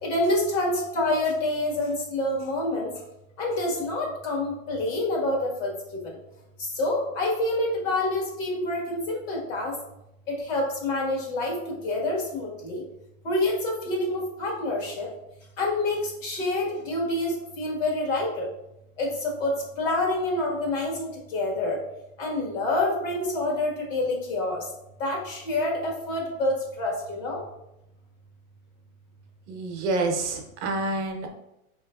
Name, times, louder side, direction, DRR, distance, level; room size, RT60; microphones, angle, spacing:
voice 1, 0.0-2.9 3.4-5.7 6.6-9.7 10.5-11.6 11.8-12.8 13.2-15.1 15.6-18.5 19.0-21.8 22.2-24.6 25.0-27.4, left 2 dB, 60° left, -2 dB, 1.5 m, -27 dB
voice 2, 29.5-31.3, right 2 dB, 55° right, 3 dB, 0.7 m, -28 dB
5.0 x 3.1 x 2.3 m, 0.87 s
supercardioid pair, 170°, 42 cm